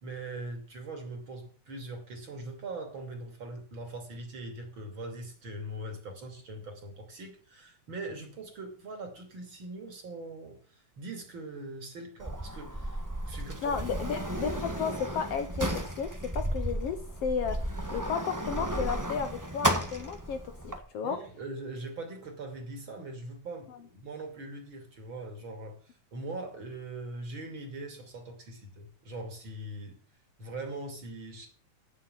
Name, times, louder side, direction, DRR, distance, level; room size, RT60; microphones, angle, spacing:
voice 1, 0.0-10.6 11.0-13.8 21.0-25.7 26.1-30.0 30.4-31.5, right 2 dB, 45° right, 4 dB, 3.1 m, -41 dB
Sliding door, 12.2-20.8, right 1 dB, 20° right, 0.5 m, -33 dB
voice 2, 13.6-16.1 16.3-21.2 23.7-23.8, left 6 dB, 65° left, 8 dB, 1.8 m, -33 dB
9.1 x 7.5 x 8.0 m, 0.42 s
omnidirectional pair, 3.3 m